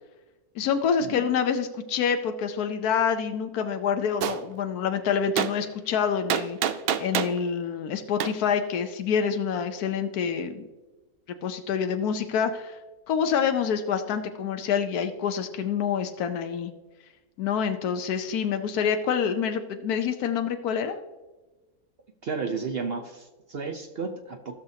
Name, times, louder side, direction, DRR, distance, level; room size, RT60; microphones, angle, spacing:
voice 1, 0.5-6.6 7.0-10.7 11.4-12.8 13.1-16.7 17.4-21.0, left 7 dB, 90° left, 7 dB, 1.2 m, -27 dB
Gunshot gunfire, 4.2-4.4 5.4-5.5 6.3-7.4 8.2-8.3, right 9 dB, 80° right, 0.5 m, -26 dB
voice 2, 22.2-24.5, right 5 dB, 50° right, 3 dB, 0.8 m, -33 dB
16.0 x 6.5 x 2.8 m, 1.2 s
omnidirectional pair, 1.6 m